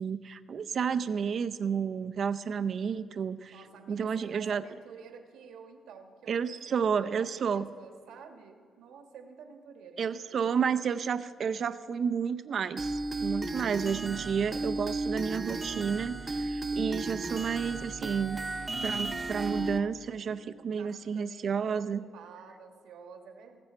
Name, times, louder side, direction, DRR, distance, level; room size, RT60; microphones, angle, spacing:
voice 1, 0.0-3.6 3.9-4.6 6.3-7.6 10.0-18.4 18.8-22.0, right 6 dB, 55° right, 12 dB, 0.6 m, -31 dB
voice 2, 3.5-10.2 20.7-23.6, right 6 dB, 85° right, 5 dB, 1.4 m, -50 dB
sound 1, 12.8-19.8, right 2 dB, 25° right, 0.9 m, -34 dB
20.5 x 7.0 x 4.4 m, 2.2 s
cardioid pair, 90°, 0 cm